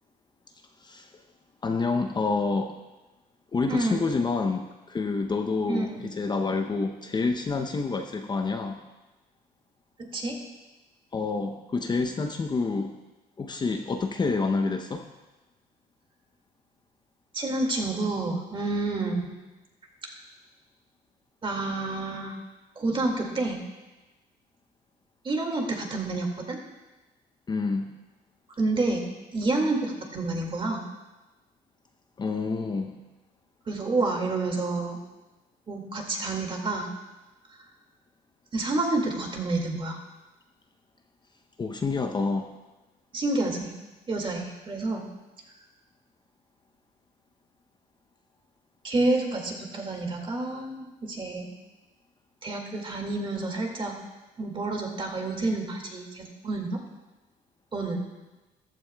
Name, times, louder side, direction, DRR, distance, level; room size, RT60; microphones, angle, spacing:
voice 1, 1.6-2.8 3.5-8.8 11.1-12.9 13.4-15.1 27.5-27.9 32.2-33.0 41.6-42.5, left 4 dB, 25° left, 4 dB, 0.7 m, -28 dB
voice 2, 3.7-4.1 5.7-6.1 10.0-10.4 17.3-19.3 21.4-22.4 22.8-23.6 25.2-26.6 28.6-30.8 33.7-35.0 35.7-36.9 37.5-37.6 38.5-40.0 43.1-43.7 44.1-45.1 48.8-51.6 52.4-54.0 54.4-56.8 57.7-58.1, right 2 dB, 30° right, 1 dB, 2.1 m, -29 dB
14.5 x 12.0 x 2.3 m, 1.1 s
cardioid pair, 110°, 17 cm